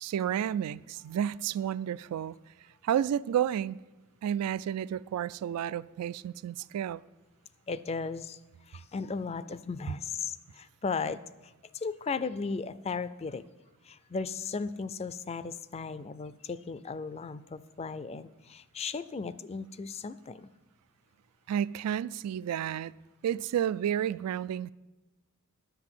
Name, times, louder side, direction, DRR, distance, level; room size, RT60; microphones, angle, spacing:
voice 1, 0.0-2.3 2.8-3.8 4.2-7.0 21.5-22.9 23.2-24.7, right 9 dB, 90° right, 0.3 m, -31 dB
voice 2, 7.7-8.4 8.7-13.4 13.8-20.5, left 4 dB, 30° left, 0.4 m, -36 dB
10.5 x 8.0 x 7.4 m
head